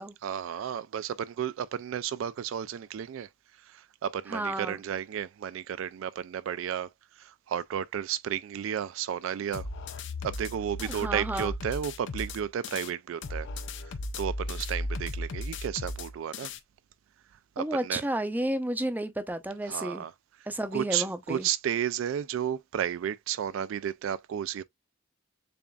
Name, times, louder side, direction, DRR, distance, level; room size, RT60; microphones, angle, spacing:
voice 1, 0.2-3.3 3.6-6.9 7.2-9.7 10.2-13.5 13.9-16.5 17.6-18.0 19.7-20.1 20.7-24.6, right 9 dB, 70° right, 0.3 m, -33 dB
voice 2, 4.3-4.8 10.8-11.5 17.6-20.0 20.5-21.5, right 1 dB, 10° right, 0.5 m, -32 dB
sound 1, 9.5-12.9 13.2-16.6, left 1 dB, 65° left, 0.5 m, -36 dB
6.9 x 2.5 x 2.3 m
head